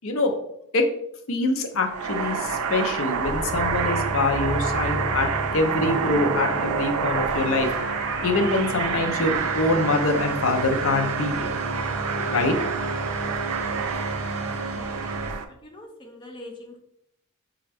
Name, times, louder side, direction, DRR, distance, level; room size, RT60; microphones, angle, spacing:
voice 1, 0.0-0.4 0.7-0.9 1.3-7.7 8.2-11.5 12.1-12.5, left 2 dB, 70° left, 4 dB, 0.6 m, -24 dB
sound 1, 1.8-15.4, right 6 dB, 85° right, 0.4 m, -28 dB
sound 2, 3.2-15.3, right 2 dB, 60° right, 0.7 m, -32 dB
voice 2, 14.3-15.2 15.5-16.8, left 1 dB, 20° left, 1 dB, 0.4 m, -44 dB
4.1 x 2.3 x 3.3 m, 0.74 s
head